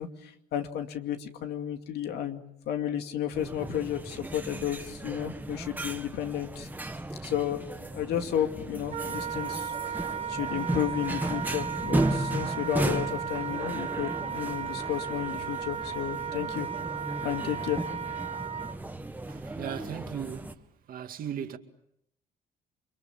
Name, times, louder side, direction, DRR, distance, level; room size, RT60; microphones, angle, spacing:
voice 1, 0.0-6.7 7.2-7.6 7.9-9.7 10.3-16.7 17.2-17.8 18.1-18.2, left 10 dB, 75° left, 2.4 m, -32 dB
sound 1, 3.3-20.5, right 1 dB, 10° right, 1.7 m, -35 dB
Wind instrument woodwind instrument, 8.9-18.8, right 8 dB, 40° right, 2.5 m, -35 dB
voice 2, 19.3-20.6 20.9-21.6, right 9 dB, 55° right, 2.2 m, -37 dB
29.0 x 24.0 x 7.3 m
cardioid pair, 110°, 17 cm